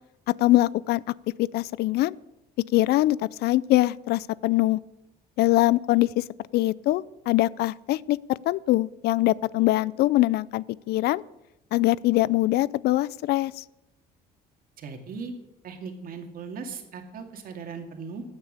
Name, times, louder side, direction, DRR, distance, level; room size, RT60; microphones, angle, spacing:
voice 1, 0.3-1.0 1.4-2.1 2.7-4.8 5.4-6.2 6.5-8.2 8.5-11.2 11.7-13.6, left 17 dB, 75° left, 23 dB, 0.4 m, -23 dB
voice 2, 14.8-15.3 15.6-18.2, right 5 dB, 60° right, 5 dB, 2.4 m, -38 dB
15.5 x 9.0 x 6.6 m, 0.92 s
cardioid pair, 110°, 17 cm